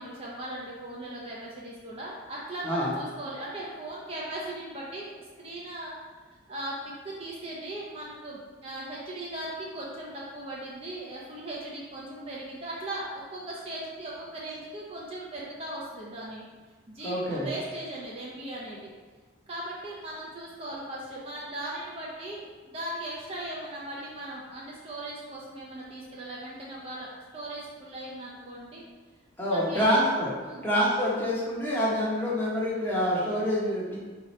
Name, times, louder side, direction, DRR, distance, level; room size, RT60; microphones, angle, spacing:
voice 1, 0.0-5.1 5.4-5.9 6.5-6.7 7.0-13.0 13.3-16.4 16.9-18.9 19.5-28.8 29.5-30.1 30.4-30.7, right 1 dB, 30° right, -5 dB, 0.5 m, -38 dB
voice 2, 2.6-3.0 17.0-17.5 29.4-30.3 30.6-34.0, equal, 10° left, -7 dB, 0.8 m, -26 dB
4.7 x 2.8 x 3.1 m, 1.4 s
head